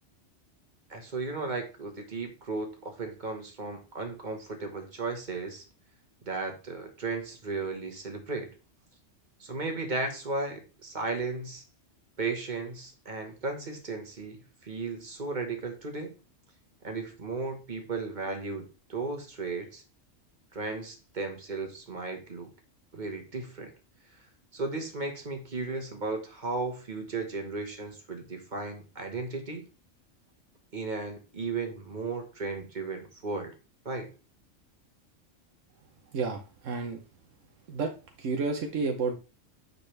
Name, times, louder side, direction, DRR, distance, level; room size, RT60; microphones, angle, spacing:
voice 1, 0.9-5.6 6.2-8.5 9.4-11.6 12.2-16.1 16.8-19.8 20.5-22.5 22.9-23.7 24.5-29.7 30.7-33.6 33.8-34.1, right 3 dB, 40° right, 4 dB, 1.5 m, -35 dB
voice 2, 36.1-37.0 37.7-37.9 38.2-39.1, right 4 dB, 80° right, 4 dB, 1.2 m, -30 dB
9.1 x 4.1 x 3.3 m, 0.32 s
omnidirectional pair, 1.3 m